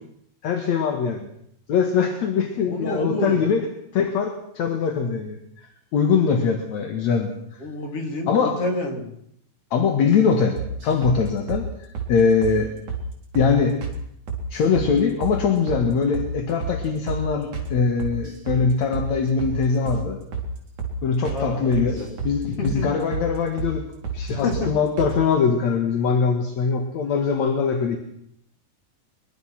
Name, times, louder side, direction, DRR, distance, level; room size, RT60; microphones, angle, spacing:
voice 1, 0.4-1.3 1.7-3.7 3.9-5.4 5.9-7.3 8.3-8.6 9.7-10.6 10.8-11.6 12.1-12.7 13.3-13.8 14.5-20.2 21.0-22.0 22.2-23.8 24.1-28.0, left 5 dB, 50° left, 4 dB, 2.7 m, -22 dB
voice 2, 2.6-3.4 7.6-9.1 21.3-22.1 22.4-22.9 24.3-24.7, left 2 dB, 35° left, 2 dB, 4.4 m, -28 dB
sound 1, 10.6-11.2 11.5-11.6 11.9-12.1 12.4-12.6 12.9-13.0 13.3-13.5 13.8-14.0 14.3-14.9 15.2-15.4 15.7-15.8 16.1-16.3 16.6-16.8 17.1-17.2 17.5-17.7 18.0-18.6 18.9-19.1 19.4-19.6 19.9-20.0 20.3-20.5 20.8-20.9 21.2-21.4 21.7-22.3 22.6-22.8 23.1-23.3 23.6-23.7 24.0-24.2 24.5-24.7 25.0-25.1, right 6 dB, 45° right, 4.9 m, -30 dB
23.5 x 22.5 x 6.0 m, 0.71 s
omnidirectional pair, 4.8 m